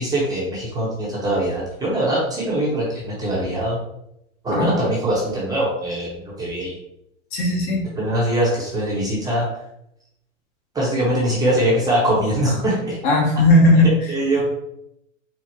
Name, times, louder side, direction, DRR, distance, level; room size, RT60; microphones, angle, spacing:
voice 1, 0.0-3.8 4.4-6.8 7.9-9.5 10.7-13.0 14.1-14.4, right 1 dB, 10° right, -6 dB, 0.7 m, -22 dB
voice 2, 7.3-7.9 13.0-14.1, left 1 dB, 40° left, -1 dB, 1.0 m, -16 dB
4.3 x 2.0 x 4.3 m, 0.79 s
hypercardioid pair, 145°, 39 cm